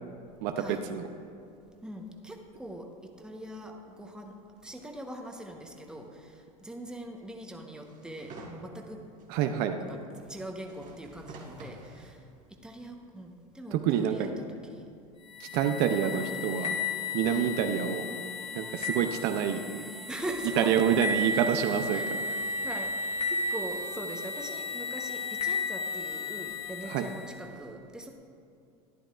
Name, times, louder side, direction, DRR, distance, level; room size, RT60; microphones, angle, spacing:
voice 1, 1.8-4.3 4.6-6.3 6.6-9.0 9.8-12.2 12.6-14.9 15.6-16.5 17.3-17.5 20.1-20.7 21.9-28.2, right 1 dB, 5° right, 2 dB, 1.0 m, -42 dB
sound 1, 7.9-8.6 9.2-9.3 10.6-12.1 12.8-12.9, right 2 dB, 45° right, 1.6 m, -48 dB
voice 2, 9.3-9.8 13.7-14.2 15.4-16.7 17.1-18.0 18.5-19.9 20.6-22.2 26.9-27.1, right 8 dB, 60° right, 6 dB, 0.6 m, -27 dB
sound 2, 15.2-27.4, left 3 dB, 30° left, 1.3 m, -34 dB
12.0 x 10.0 x 2.5 m, 2.5 s
hypercardioid pair, 90°, 19 cm